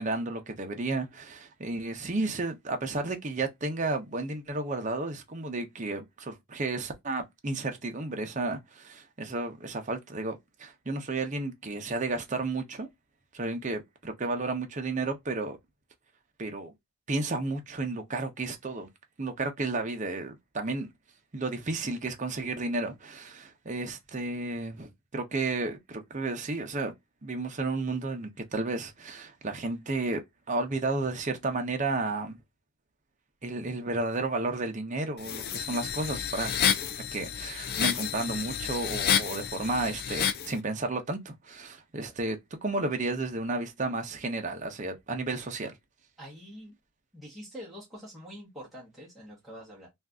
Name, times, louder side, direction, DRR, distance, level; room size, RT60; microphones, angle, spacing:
voice 1, 0.0-12.9 13.3-15.6 16.4-16.7 17.1-18.9 19.2-20.9 21.3-26.9 27.2-30.2 30.5-32.4 33.4-36.5 37.1-45.8, right 2 dB, 35° right, 0.6 m, -32 dB
sound 1, 35.2-40.5, left 8 dB, 45° left, 0.3 m, -30 dB
voice 2, 46.2-46.7 47.1-49.9, equal, ahead, 0.8 m, -45 dB
2.6 x 2.4 x 3.4 m
head